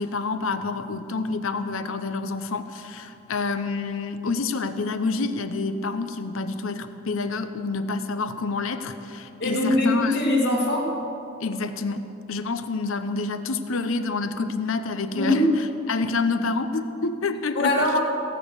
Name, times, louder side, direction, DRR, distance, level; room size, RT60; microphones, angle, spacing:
voice 1, 0.0-10.2 11.4-17.7, left 3 dB, 80° left, 10 dB, 0.8 m, -28 dB
voice 2, 9.4-10.9 15.1-15.5 17.5-18.0, left 1 dB, 55° left, -1 dB, 2.2 m, -22 dB
17.5 x 6.3 x 8.2 m, 2.8 s
head